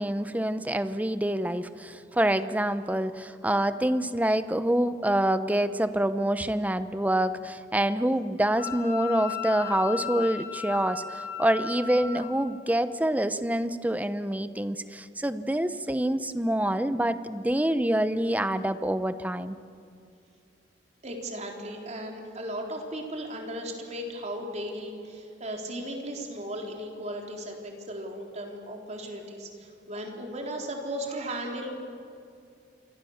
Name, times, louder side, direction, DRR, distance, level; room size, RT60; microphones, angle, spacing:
voice 1, 0.0-19.6, right 1 dB, 10° right, 12 dB, 0.8 m, -26 dB
Wind instrument woodwind instrument, 8.6-12.3, left 8 dB, 40° left, 6.6 m, -35 dB
voice 2, 21.0-31.8, right 1 dB, 40° right, 2 dB, 3.8 m, -36 dB
28.5 x 23.5 x 7.3 m, 2.4 s
head